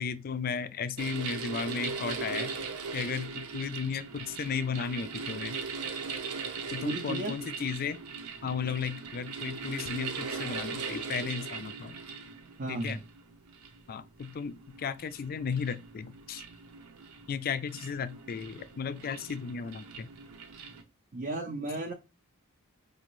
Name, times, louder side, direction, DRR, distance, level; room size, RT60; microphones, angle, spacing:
voice 1, 0.0-2.5 2.9-5.6 6.7-8.0 8.4-12.0 12.7-13.0 13.9-16.4 17.3-20.1, left 6 dB, 40° left, 0.3 m, -35 dB
sound 1, 1.0-20.8, right 5 dB, 80° right, 0.8 m, -40 dB
voice 2, 6.8-7.3 12.6-13.0 21.1-21.9, right 2 dB, 40° right, 0.5 m, -34 dB
4.9 x 2.6 x 3.0 m
head